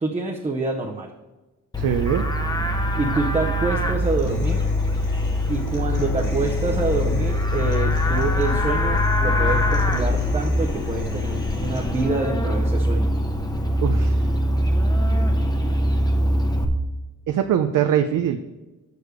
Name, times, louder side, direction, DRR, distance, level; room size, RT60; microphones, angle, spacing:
voice 1, 0.0-1.1 2.7-4.6 5.5-13.1, right 3 dB, 20° right, 0 dB, 0.7 m, -26 dB
Livestock farm animals working animals, 1.7-16.6, left 1 dB, 10° left, 0.8 m, -22 dB
voice 2, 1.8-2.2 13.8-14.3 17.3-18.4, right 9 dB, 75° right, 7 dB, 0.6 m, -22 dB
Human voice / Acoustic guitar, 4.0-12.0, left 2 dB, 70° left, 2.3 m, -40 dB
6.8 x 6.5 x 4.8 m, 1.1 s
wide cardioid pair, 125°, 32 cm